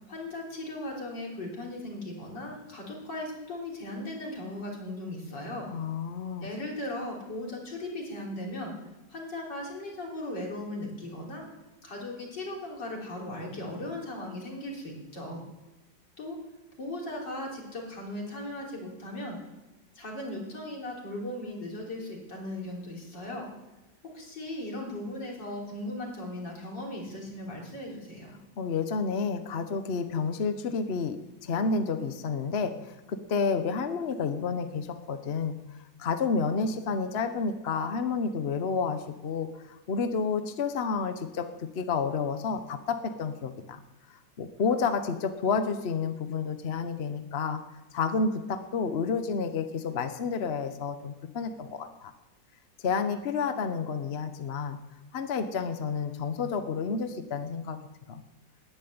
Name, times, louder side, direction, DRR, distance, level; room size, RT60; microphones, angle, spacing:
voice 1, 0.1-5.7 6.4-8.7 9.1-11.5 11.8-15.4 16.2-16.4 16.8-19.4 20.0-23.5 24.1-28.3, left 1 dB, 70° left, -2 dB, 4.1 m, -37 dB
voice 2, 5.7-6.5 28.6-35.6 36.0-43.8 44.1-47.6 47.9-52.1 52.8-54.8 55.1-57.8 58.1-58.2, left 5 dB, 45° left, 8 dB, 0.9 m, -30 dB
14.0 x 9.1 x 9.5 m, 1.1 s
omnidirectional pair, 2.0 m